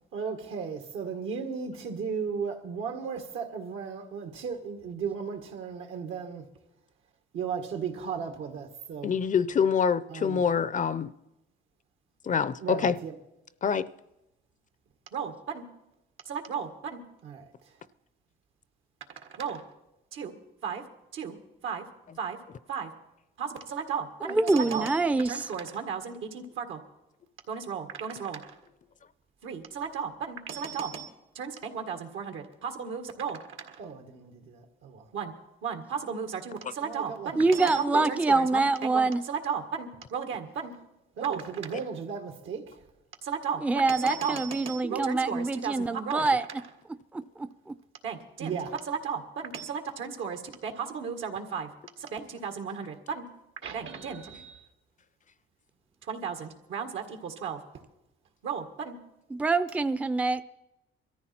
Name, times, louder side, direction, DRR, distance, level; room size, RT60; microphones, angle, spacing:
voice 1, 0.1-6.5 7.3-9.1 10.1-10.4 12.6-13.2 15.1-15.7 16.3-17.5 19.2-19.7 20.1-20.3 20.6-20.8 21.1-21.4 21.6-21.9 22.2-22.4 22.7-22.9 23.4-25.0 25.3-26.8 27.5-28.6 29.4-35.3 35.6-40.7 41.2-42.8 43.2-45.7 46.0-46.2 48.0-51.7 52.0-53.3 53.6-54.7 56.0-57.6 58.4-59.0, right 6 dB, 80° right, 1.9 m, -35 dB
voice 2, 9.0-11.1 12.3-13.0 13.6-13.9, left 6 dB, 40° left, 0.5 m, -25 dB
voice 3, 24.3-25.4 37.4-39.2 43.6-46.4 47.4-47.7 59.3-60.4, right 3 dB, 5° right, 0.5 m, -25 dB
22.0 x 14.0 x 4.4 m
cardioid pair, 90°, 20 cm